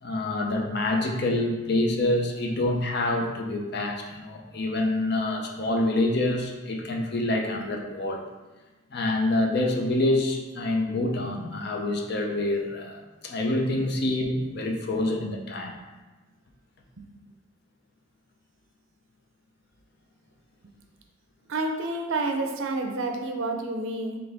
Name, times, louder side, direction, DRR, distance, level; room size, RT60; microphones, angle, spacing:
voice 1, 0.0-8.2 8.9-15.8, left 2 dB, 50° left, 2 dB, 0.5 m, -26 dB
voice 2, 21.5-24.2, right 2 dB, 70° right, 4 dB, 0.5 m, -29 dB
3.9 x 3.4 x 3.4 m, 1.2 s
head